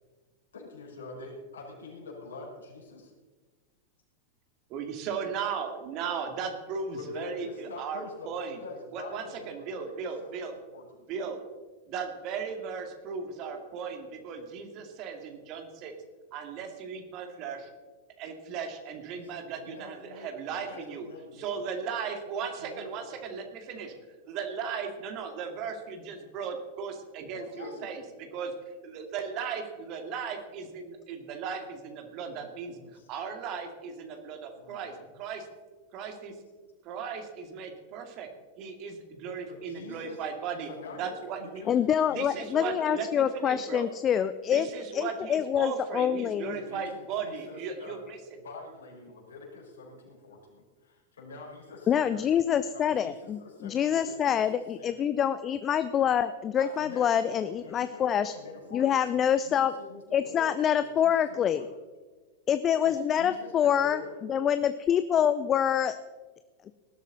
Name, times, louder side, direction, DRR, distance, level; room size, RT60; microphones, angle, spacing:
voice 1, 0.5-3.1 6.9-11.1 19.1-19.3 19.6-21.7 22.6-23.2 27.3-27.9 32.3-33.1 34.5-35.0 39.5-40.2 40.7-42.5 46.4-48.0 48.4-52.2 52.7-54.5 54.7-55.0 56.6-59.1 59.4-61.1 61.4-61.7 62.8-64.2, left 3 dB, 65° left, -2 dB, 5.5 m, -46 dB
voice 2, 4.7-8.6 8.9-10.5 11.1-11.4 11.9-15.9 16.3-17.7 18.2-21.1 21.3-23.9 24.2-28.5 28.8-32.8 33.1-35.5 35.9-36.3 36.8-38.3 38.6-40.7 41.0-41.6 42.1-43.9 44.5-48.2, right 6 dB, 40° right, 5 dB, 2.2 m, -36 dB
voice 3, 41.7-44.7 44.9-46.6 51.9-58.3 58.7-59.8 60.1-61.7 62.5-64.0 64.3-65.9, left 9 dB, 25° left, 12 dB, 0.5 m, -26 dB
19.5 x 12.5 x 4.0 m, 1.3 s
figure-of-eight pair, 90°, 0 cm